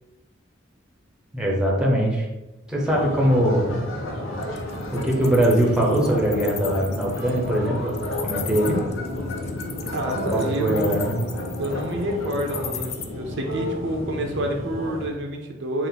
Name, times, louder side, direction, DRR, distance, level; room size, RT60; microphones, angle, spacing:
voice 1, 1.3-2.3 2.7-3.8 4.9-8.8 10.3-11.2, right 1 dB, 5° right, -2 dB, 0.7 m, -22 dB
sound 1, 2.9-15.1, left 1 dB, 90° left, 0.8 m, -32 dB
Wild animals, 4.4-13.0, left 9 dB, 35° left, 0.3 m, -37 dB
voice 2, 9.9-11.1 11.6-15.9, right 1 dB, 60° right, 2 dB, 0.6 m, -28 dB
3.7 x 2.5 x 3.9 m, 1.0 s
head